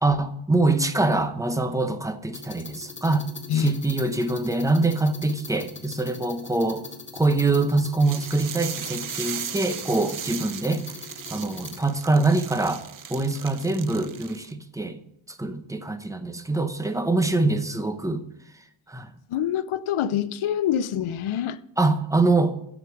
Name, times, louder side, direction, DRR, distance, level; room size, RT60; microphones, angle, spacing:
voice 1, 0.0-3.2 3.5-6.8 7.1-10.8 11.3-12.8 13.1-15.0 15.3-18.2 18.9-19.1 21.8-22.5, right 2 dB, 5° right, 0.8 m, -24 dB
sound 1, 2.3-11.8, left 4 dB, 25° left, 1.5 m, -41 dB
sound 2, 8.0-14.5, right 9 dB, 45° right, 0.6 m, -37 dB
voice 2, 19.3-21.6, left 10 dB, 80° left, 0.7 m, -25 dB
8.1 x 7.3 x 6.9 m
wide cardioid pair, 125°, 49 cm